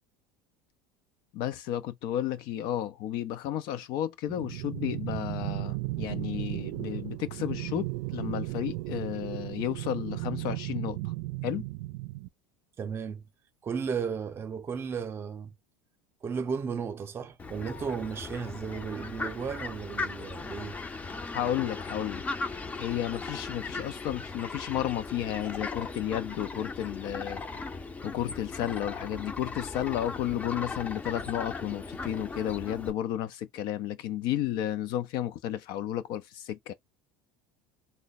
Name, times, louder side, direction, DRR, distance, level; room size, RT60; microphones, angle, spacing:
voice 1, 1.3-11.1 11.4-11.7 21.3-22.2 22.8-27.4 28.0-36.7, left 11 dB, 60° left, 0.5 m, -32 dB
sound 1, 4.3-12.3, right 20 dB, 75° right, 0.4 m, -35 dB
voice 2, 12.8-13.3 13.6-15.5 16.2-20.8, right 6 dB, 30° right, 0.7 m, -34 dB
Fowl, 17.4-32.9, left 3 dB, 20° left, 0.6 m, -38 dB
3.1 x 2.2 x 4.0 m
supercardioid pair, 125°, 8 cm